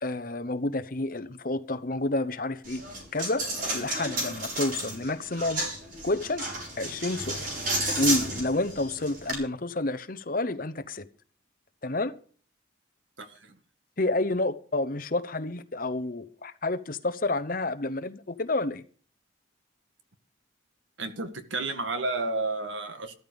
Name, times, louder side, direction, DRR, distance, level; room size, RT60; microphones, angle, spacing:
voice 1, 0.0-2.8 3.1-3.4 3.7-5.6 6.0-6.5 6.8-7.5 8.0-11.1 11.8-12.1 14.0-18.8, left 2 dB, 45° left, 0.9 m, -29 dB
Coin (dropping), 2.6-9.3, right 1 dB, 45° right, 6.5 m, -32 dB
voice 2, 13.2-13.6 21.0-23.1, right 3 dB, 80° right, 1.8 m, -31 dB
13.5 x 13.0 x 5.2 m
head